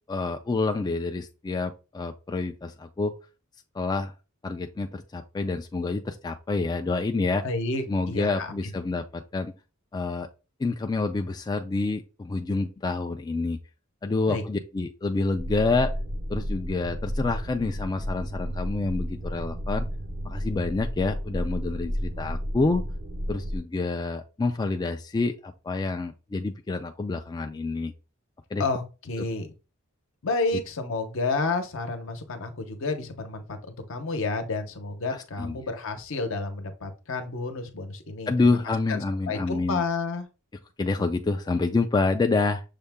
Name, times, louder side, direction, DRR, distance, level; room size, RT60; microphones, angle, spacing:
voice 1, 0.1-3.1 3.7-4.1 4.4-7.4 7.9-9.5 9.9-10.3 10.6-13.6 14.0-15.9 16.3-19.9 20.2-22.8 23.3-27.9 28.5-28.6 29.2-29.3 35.4-35.6 38.3-39.8 40.8-42.6, left 3 dB, 20° left, 5 dB, 0.3 m, -27 dB
voice 2, 7.4-8.7 14.3-14.4 28.6-29.5 30.2-38.3 38.9-39.0 39.3-40.3, left 3 dB, 65° left, 7 dB, 0.8 m, -30 dB
sound 1, 15.3-23.6, equal, 60° right, 0.6 m, -32 dB
6.6 x 2.2 x 3.4 m, 0.31 s
head